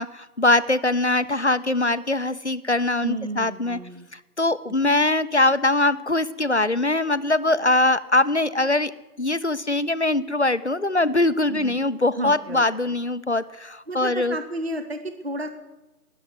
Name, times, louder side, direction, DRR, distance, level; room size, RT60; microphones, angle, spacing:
voice 1, 0.0-3.8 4.1-8.9 9.2-14.4, left 2 dB, 50° left, 14 dB, 0.6 m, -22 dB
voice 2, 3.0-4.1 11.5-11.8 12.1-13.0 13.9-15.5, right 2 dB, 40° right, 8 dB, 1.0 m, -32 dB
20.0 x 7.1 x 9.5 m, 1.0 s
figure-of-eight pair, 165°, 46 cm